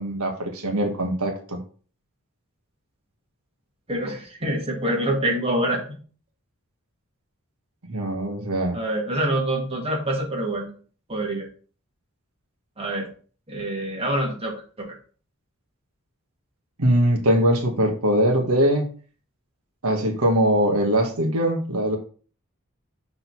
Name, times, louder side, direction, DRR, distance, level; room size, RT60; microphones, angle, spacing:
voice 1, 0.0-1.6 7.9-8.8 16.8-18.9 19.8-22.0, right 1 dB, 85° right, 3 dB, 1.4 m, -22 dB
voice 2, 3.9-6.0 8.7-10.7 11.1-11.5 12.8-13.1 13.5-14.9, right 1 dB, 25° right, -1 dB, 2.0 m, -26 dB
6.1 x 3.8 x 5.9 m, 0.41 s
head